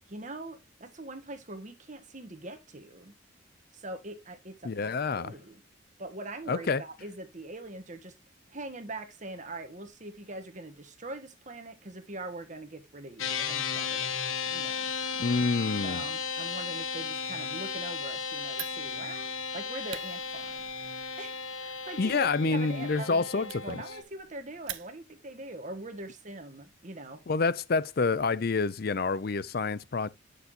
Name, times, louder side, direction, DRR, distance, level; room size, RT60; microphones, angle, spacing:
voice 1, 0.1-3.1 3.7-5.6 6.0-8.1 8.5-14.9 15.8-20.6 21.2-27.2, right 2 dB, 40° right, 1.4 m, -42 dB
voice 2, 4.6-5.3 6.5-6.8 15.2-16.0 22.0-23.8 27.3-30.1, left 4 dB, 50° left, 0.5 m, -28 dB
sound 1, 13.2-24.0, left 5 dB, 90° left, 1.3 m, -35 dB
Fire, 18.5-25.3, right 12 dB, 75° right, 0.8 m, -47 dB
9.4 x 6.7 x 2.6 m
head